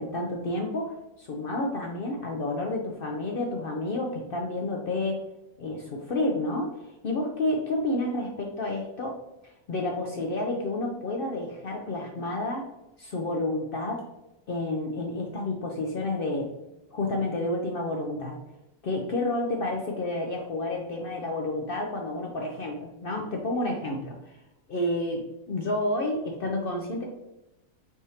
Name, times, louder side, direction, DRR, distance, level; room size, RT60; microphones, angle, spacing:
voice 1, 0.0-5.2 5.6-12.6 13.0-14.0 14.5-16.5 16.9-18.5 18.8-24.4 24.7-27.0, left 2 dB, 65° left, 0 dB, 0.5 m, -30 dB
4.6 x 3.4 x 2.7 m, 0.94 s
omnidirectional pair, 1.5 m